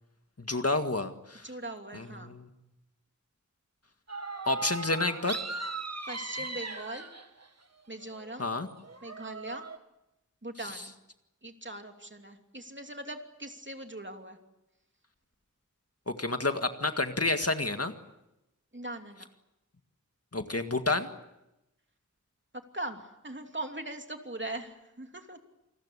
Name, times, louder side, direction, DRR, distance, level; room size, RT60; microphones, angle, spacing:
voice 1, 0.4-1.5 1.9-2.5 4.5-5.4 8.4-8.7 16.1-17.9 20.3-21.1, left 2 dB, 50° left, 7 dB, 1.9 m, -29 dB
voice 2, 1.4-2.4 6.1-7.1 7.9-8.5 9.0-9.7 10.4-10.9 11.4-14.4 18.7-19.3 22.7-25.4, right 1 dB, 40° right, 4 dB, 2.9 m, -40 dB
sound 1, 4.1-7.5 8.0-9.8, right 3 dB, 55° right, 1.7 m, -39 dB
28.0 x 20.5 x 8.3 m, 0.92 s
wide cardioid pair, 45°, 31 cm